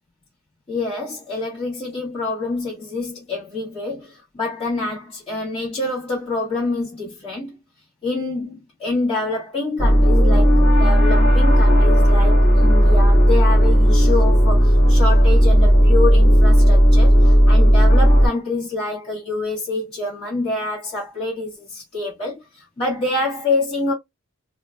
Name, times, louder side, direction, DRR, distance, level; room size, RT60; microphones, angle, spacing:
voice 1, 0.7-7.5 8.0-23.9, left 2 dB, 25° left, 1.4 m, -26 dB
sound 1, 9.8-18.3, equal, 50° left, 1.6 m, -13 dB
3.8 x 2.3 x 2.3 m
head